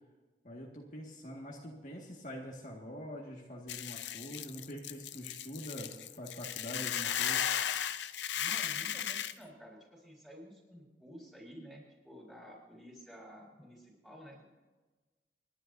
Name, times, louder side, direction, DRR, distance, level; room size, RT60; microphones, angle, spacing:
voice 1, 0.4-7.5, equal, 45° left, -2 dB, 1.9 m, -45 dB
Hiss / Boiling, 3.7-9.3, left 10 dB, 85° left, 0.6 m, -35 dB
voice 2, 8.4-14.4, equal, ahead, -4 dB, 5.3 m, -52 dB
30.0 x 11.0 x 2.7 m, 1.2 s
head